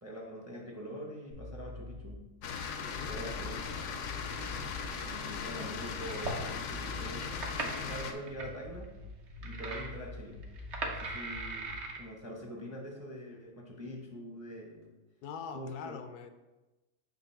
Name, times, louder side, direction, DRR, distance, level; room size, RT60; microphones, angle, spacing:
voice 1, 0.0-2.2 3.1-3.8 5.0-9.0 9.4-10.4 10.9-14.9 15.5-16.0, equal, 15° right, -1 dB, 0.6 m, -44 dB
sound 1, 1.3-2.3 2.9-4.9 5.6-6.4 6.6-7.6 8.3-11.9, left 2 dB, 75° right, 1.5 m, -46 dB
sound 2, 2.4-8.1, left 5 dB, 65° left, 0.8 m, -38 dB
sound 3, 4.2-5.3 5.9-6.6 7.0-8.5 8.8-8.9 9.3-10.1 10.4-12.0, right 3 dB, 55° right, 1.0 m, -39 dB
voice 2, 15.2-16.3, left 6 dB, 85° left, 8 dB, 1.1 m, -43 dB
6.6 x 2.6 x 5.6 m, 1.1 s
omnidirectional pair, 1.6 m